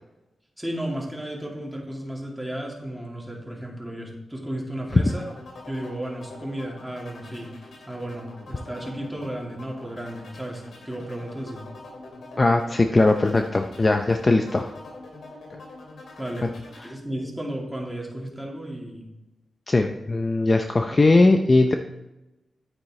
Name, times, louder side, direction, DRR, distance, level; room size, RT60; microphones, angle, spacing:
voice 1, 0.6-5.3 5.7-7.5 7.9-11.6 16.2-16.5 16.8-19.1, right 1 dB, ahead, -3 dB, 2.6 m, -34 dB
sound 1, 4.9-16.9, left 2 dB, 85° left, 2.6 m, -44 dB
voice 2, 12.4-14.7 19.7-21.7, left 2 dB, 30° left, 5 dB, 0.6 m, -19 dB
9.9 x 8.8 x 3.2 m, 0.99 s
cardioid pair, 85°, 0 cm